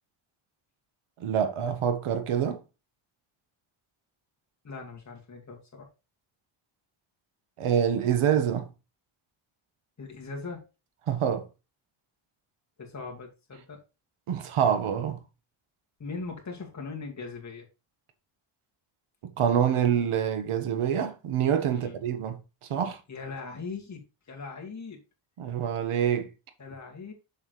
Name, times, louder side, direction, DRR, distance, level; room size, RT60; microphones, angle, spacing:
voice 1, 1.2-2.6 7.6-8.7 11.1-11.5 14.3-15.2 19.2-23.0 25.4-26.3, right 8 dB, 80° right, 1.4 m, -26 dB
voice 2, 4.6-5.9 10.0-10.6 12.8-13.8 16.0-17.7 21.7-22.0 23.1-24.0 24.3-25.0 26.6-27.1, left 4 dB, 35° left, 2.1 m, -40 dB
7.1 x 6.5 x 3.2 m
cardioid pair, 130°, 50 cm